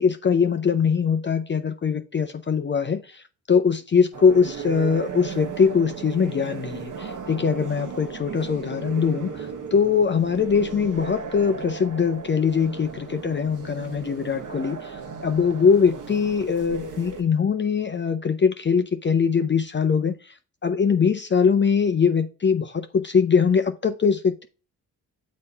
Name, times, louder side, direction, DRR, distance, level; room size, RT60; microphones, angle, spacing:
voice 1, 0.0-20.3 20.6-24.5, left 6 dB, 30° left, 0.5 m, -22 dB
sound 1, 4.1-17.2, right 6 dB, 50° right, 1.2 m, -36 dB
6.8 x 4.2 x 3.4 m
supercardioid pair, 55°, 41 cm